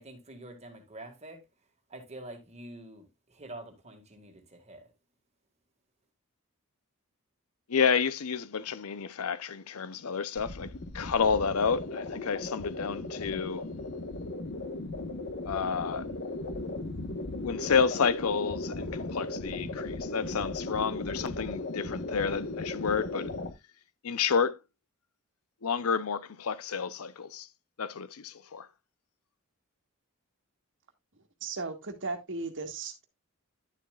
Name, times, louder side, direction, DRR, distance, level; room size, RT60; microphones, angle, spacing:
voice 1, 0.0-1.4 1.9-4.9, right 1 dB, 30° right, 1.9 m, -46 dB
voice 2, 7.7-13.6 15.4-16.1 17.4-23.4 24.0-24.6 25.6-27.5 27.8-28.7, left 6 dB, 80° left, 0.7 m, -30 dB
sound 1, 10.4-23.5, left 2 dB, 55° left, 1.3 m, -37 dB
voice 3, 31.4-33.0, right 3 dB, 60° right, 1.7 m, -36 dB
11.0 x 7.2 x 2.4 m
head